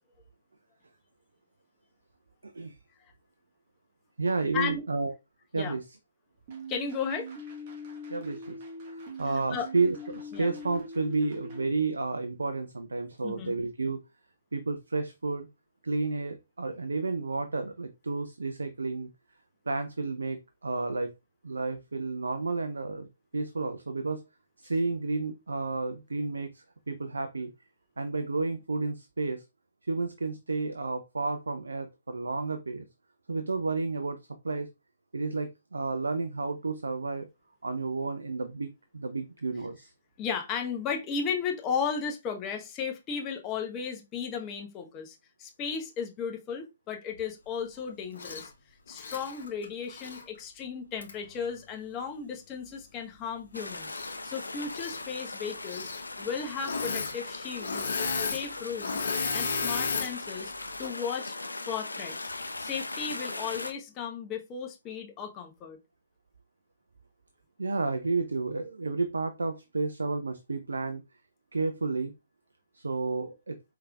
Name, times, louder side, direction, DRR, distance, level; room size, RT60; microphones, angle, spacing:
voice 1, 2.4-2.8 4.2-5.1 5.5-5.8 8.1-8.6 8.9-14.0 14.5-15.5 15.8-19.1 19.7-21.1 21.4-23.1 23.3-24.2 24.6-27.5 28.0-29.4 29.8-32.9 33.3-34.2 34.4-34.7 35.1-37.3 37.6-39.9 67.6-71.0 71.5-72.1 72.7-73.6, right 3 dB, 80° right, 0.5 m, -31 dB
sound 1, 6.5-11.7, right 1 dB, 45° right, 1.6 m, -41 dB
voice 2, 6.7-7.3 9.5-9.7 10.3-10.5 13.2-13.6 40.2-48.5 48.9-54.0 54.2-55.9 56.2-57.9 58.2-59.0 59.3-60.5 60.8-61.3 61.7-62.2 62.6-65.8, left 6 dB, 25° left, 0.9 m, -35 dB
Engine / Mechanisms, 48.1-48.5 48.9-50.2 51.0-51.1 53.8-54.4 54.6-55.0 55.6-56.0 56.6-57.2 57.4-60.1 60.6-60.9, left 4 dB, 65° left, 1.0 m, -33 dB
sound 2, 53.5-63.7, left 2 dB, 90° left, 0.5 m, -39 dB
4.8 x 3.5 x 2.3 m
figure-of-eight pair, 130°, 0 cm